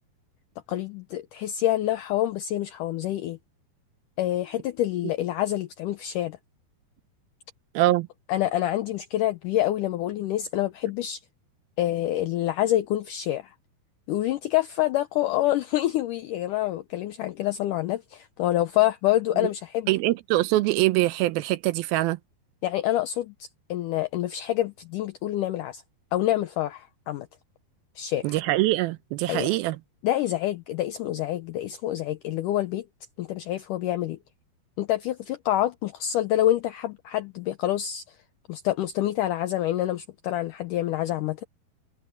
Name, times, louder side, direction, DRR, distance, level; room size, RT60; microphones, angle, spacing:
voice 1, 0.7-3.4 4.2-6.4 8.3-11.2 11.8-13.5 14.1-19.9 22.6-25.8 26.1-27.3 28.0-28.4 29.3-29.5 30.0-32.9 33.2-34.2 34.8-38.0 38.5-41.4, left 13 dB, 80° left, 1.9 m, -27 dB
voice 2, 7.7-8.1 19.4-19.5 19.9-22.2 28.2-29.8, right 17 dB, 80° right, 2.4 m, -23 dB
omnidirectional pair, 4.6 m